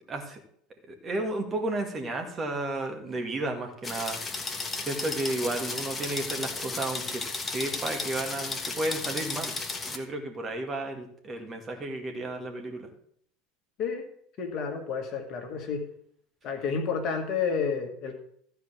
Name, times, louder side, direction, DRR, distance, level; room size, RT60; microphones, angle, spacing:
voice 1, 0.1-0.4 0.9-4.2 4.8-9.6 9.9-12.9, right 2 dB, 25° right, 4 dB, 2.0 m, -33 dB
sound 1, 3.8-10.0, left 3 dB, 20° left, 1.4 m, -34 dB
voice 2, 14.4-15.8 16.4-18.1, left 6 dB, 45° left, 4 dB, 1.9 m, -30 dB
13.5 x 4.7 x 7.1 m, 0.66 s
figure-of-eight pair, 70°, 0 cm